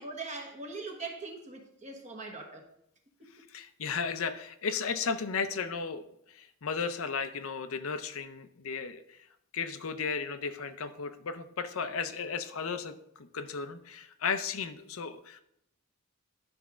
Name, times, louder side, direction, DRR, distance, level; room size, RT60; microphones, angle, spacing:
voice 1, 0.0-2.6, right 3 dB, 35° right, 3 dB, 1.3 m, -41 dB
voice 2, 3.5-9.3 9.5-15.4, left 5 dB, 65° left, 10 dB, 0.6 m, -35 dB
10.5 x 3.5 x 6.1 m, 0.76 s
head